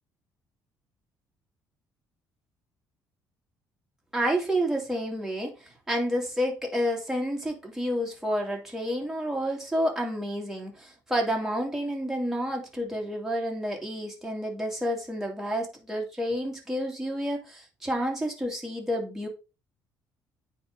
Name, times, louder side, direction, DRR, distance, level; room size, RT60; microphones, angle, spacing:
voice 1, 4.1-19.3, equal, 5° right, 2.5 m, -30 dB
9.1 x 3.8 x 3.9 m
cardioid pair, 105°, 8 cm